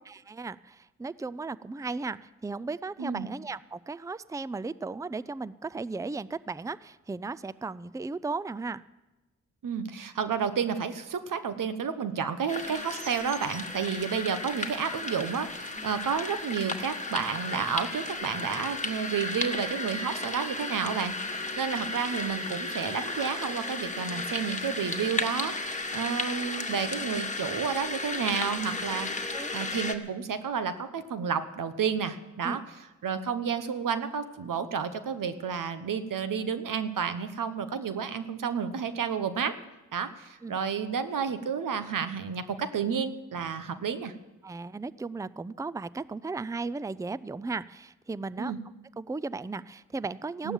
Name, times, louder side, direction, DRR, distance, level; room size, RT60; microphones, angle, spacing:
voice 1, 0.1-8.8 29.3-29.5 32.4-32.6 40.4-40.6 44.4-48.5 49.0-50.5, right 3 dB, 10° right, 17 dB, 0.5 m, -36 dB
voice 2, 9.6-32.6 33.0-39.5 39.9-44.1 48.4-48.6 50.4-50.5, right 6 dB, 85° right, 11 dB, 1.1 m, -31 dB
sound 1, 12.5-29.9, left 2 dB, 25° left, 1.6 m, -34 dB
16.0 x 12.0 x 7.3 m, 1.1 s
cardioid pair, 45°, 32 cm